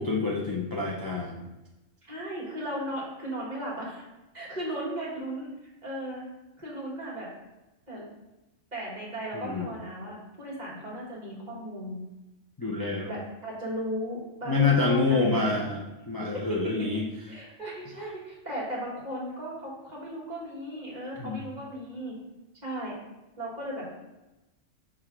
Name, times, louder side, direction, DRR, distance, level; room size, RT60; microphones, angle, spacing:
voice 1, 0.0-1.4 9.3-9.7 12.6-13.1 14.5-15.8 16.1-17.0 21.2-21.4, left 4 dB, 25° left, -2 dB, 0.5 m, -27 dB
voice 2, 2.0-4.0 4.3-5.5 5.8-6.2 6.6-7.3 7.9-8.0 8.7-12.0 12.7-15.4 16.3-16.6 17.3-22.1 22.6-23.0 23.4-23.9, right 1 dB, 35° right, -5 dB, 1.9 m, -36 dB
6.2 x 3.3 x 4.6 m, 1.0 s
omnidirectional pair, 1.3 m